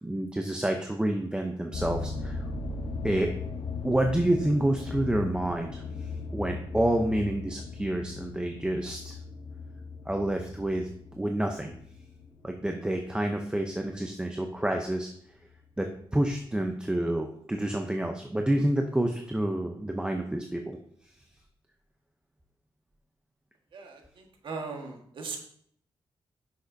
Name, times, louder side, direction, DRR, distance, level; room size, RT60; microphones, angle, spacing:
voice 1, 0.0-2.5 3.0-3.3 3.8-9.1 10.1-10.9 11.2-11.8 12.4-15.1 15.8-20.8, right 1 dB, 10° right, 3 dB, 0.7 m, -28 dB
sound 1, 1.7-14.0 14.6-14.9 15.5-15.6 16.0-16.1, left 4 dB, 70° left, 0.9 m, -38 dB
voice 2, 23.7-25.4, right 4 dB, 65° right, 2 dB, 1.5 m, -39 dB
9.6 x 6.5 x 2.7 m, 0.65 s
cardioid pair, 105°, 9 cm